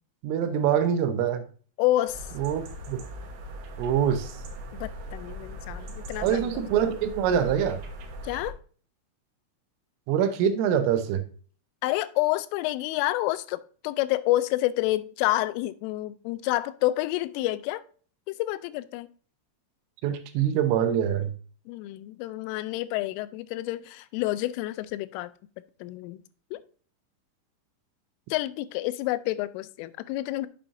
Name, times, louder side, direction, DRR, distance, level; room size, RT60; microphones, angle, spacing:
voice 1, 0.2-1.4 2.4-3.0 3.8-4.3 6.2-7.8 10.1-11.2 20.0-21.3, right 9 dB, 85° right, 3.5 m, -24 dB
voice 2, 1.8-2.3 4.7-6.5 8.2-8.6 11.8-17.8 18.3-19.1 21.7-25.3 25.8-26.2 26.5-26.6 28.3-30.5, left 16 dB, 85° left, 3.1 m, -28 dB
sound 1, 2.1-8.5, right 1 dB, 70° right, 3.0 m, -40 dB
8.7 x 7.1 x 2.6 m
omnidirectional pair, 5.6 m